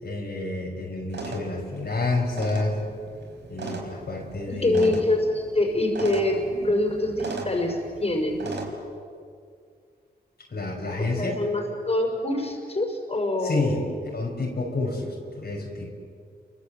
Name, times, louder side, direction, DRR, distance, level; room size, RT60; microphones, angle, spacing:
voice 1, 0.0-2.8 3.5-5.0 10.5-11.4 13.4-13.9 14.1-15.9, left 2 dB, 65° left, -1 dB, 5.8 m, -29 dB
sound 1, 1.1-8.7, right 2 dB, 80° right, 4.7 m, -37 dB
voice 2, 4.5-8.4 11.0-13.9, left 1 dB, 35° left, 2 dB, 5.6 m, -25 dB
30.0 x 24.0 x 7.9 m, 2.2 s
cardioid pair, 65°, 18 cm